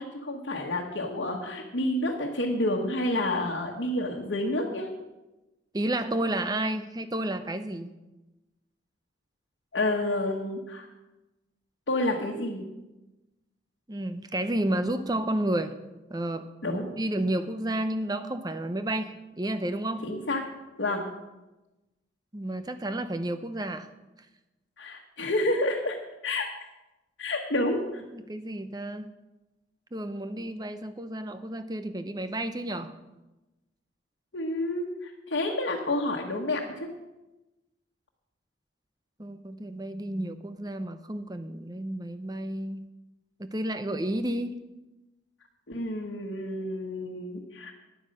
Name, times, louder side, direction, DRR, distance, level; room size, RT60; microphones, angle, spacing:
voice 1, 0.0-4.9 9.7-10.9 11.9-12.6 16.6-16.9 20.0-20.4 20.8-21.0 24.8-26.0 26.2-26.5 27.2-28.0 34.3-36.9 45.7-47.7, left 1 dB, 70° left, -1 dB, 1.3 m, -29 dB
voice 2, 5.7-7.9 13.9-15.7 16.1-20.1 22.3-23.9 28.1-29.1 29.9-32.9 39.2-42.9 43.4-44.6, right 1 dB, 20° right, 10 dB, 0.7 m, -31 dB
10.0 x 9.5 x 6.5 m, 1.0 s
head